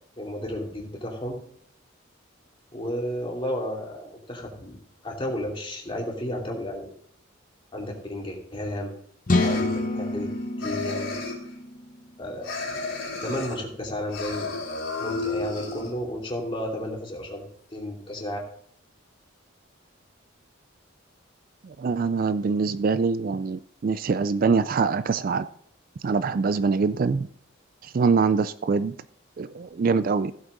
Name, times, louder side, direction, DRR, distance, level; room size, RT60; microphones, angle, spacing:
voice 1, 0.2-1.4 2.7-4.8 5.0-6.9 7.7-8.9 9.3-10.3 10.6-11.1 12.2-12.9 13.2-14.6 15.0-18.4, left 1 dB, 25° left, 2.6 m, -32 dB
sound 1, 9.3-10.3 10.6-11.5 12.4-13.6 14.1-15.9, left 3 dB, 75° left, 3.9 m, -32 dB
sound 2, 9.3-13.0, left 2 dB, 40° left, 0.8 m, -28 dB
voice 2, 21.6-25.5 26.0-27.3 27.8-28.9 29.4-30.3, right 4 dB, 45° right, 0.3 m, -24 dB
15.5 x 8.1 x 3.9 m
head